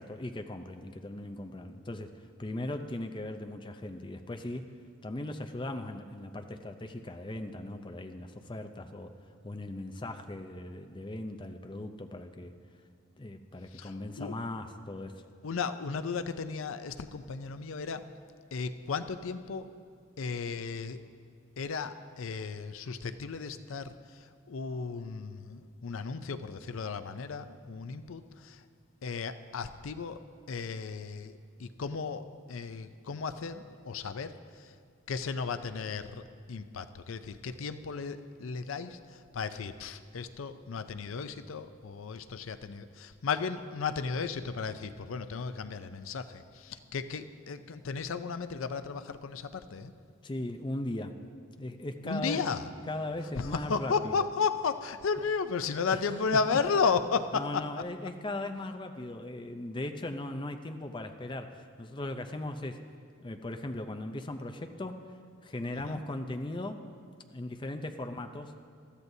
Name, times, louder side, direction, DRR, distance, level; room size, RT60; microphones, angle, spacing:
voice 1, 0.0-4.7 5.0-9.1 9.4-12.5 13.2-15.2 50.2-51.2 51.6-52.5 52.9-54.3 55.9-56.0 57.3-62.8 63.2-65.1 65.4-66.9 67.3-68.6, left 1 dB, 25° left, 6 dB, 0.5 m, -38 dB
voice 2, 13.7-14.4 15.4-18.1 18.5-19.7 20.2-21.0 21.6-28.6 29.0-34.7 35.1-49.9 52.0-52.7 53.4-57.7 65.7-66.0, left 5 dB, 80° left, 11 dB, 0.5 m, -34 dB
21.0 x 14.0 x 2.7 m, 2.2 s
head